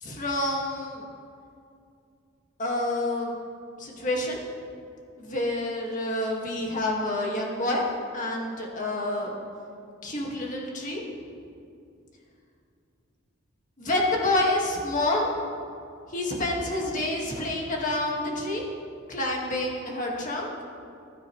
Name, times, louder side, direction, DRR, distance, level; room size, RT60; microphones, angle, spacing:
voice 1, 0.0-1.0 2.6-3.3 3.8-4.4 5.2-7.9 8.1-9.4 10.0-11.0 13.8-15.3 16.1-18.6 19.1-20.5, left 1 dB, 40° left, -2 dB, 1.9 m, -28 dB
15.0 x 12.0 x 3.2 m, 2.4 s
head